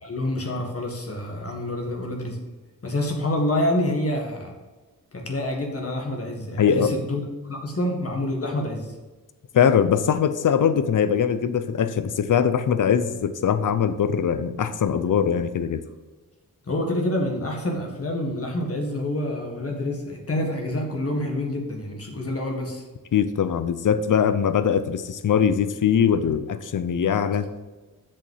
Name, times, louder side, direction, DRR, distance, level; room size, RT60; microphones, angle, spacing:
voice 1, 0.0-2.4 2.8-4.6 5.1-8.9 16.7-22.8, left 1 dB, 40° left, 1 dB, 1.8 m, -27 dB
voice 2, 6.6-6.9 9.5-15.8 23.1-27.5, left 7 dB, 65° left, 12 dB, 0.6 m, -21 dB
7.1 x 5.4 x 5.6 m, 1.2 s
wide cardioid pair, 90°, 34 cm